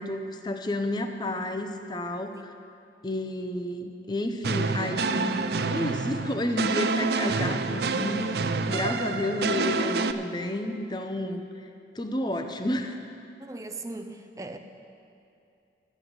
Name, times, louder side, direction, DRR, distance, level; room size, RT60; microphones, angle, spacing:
voice 1, 0.0-2.6 3.0-11.7 11.9-13.0, left 1 dB, 25° left, 6 dB, 0.7 m, -31 dB
sound 1, 4.4-10.1, right 4 dB, 60° right, 0.4 m, -27 dB
voice 2, 13.4-14.6, right 2 dB, 20° right, 6 dB, 0.6 m, -39 dB
12.0 x 7.5 x 8.0 m, 2.5 s
head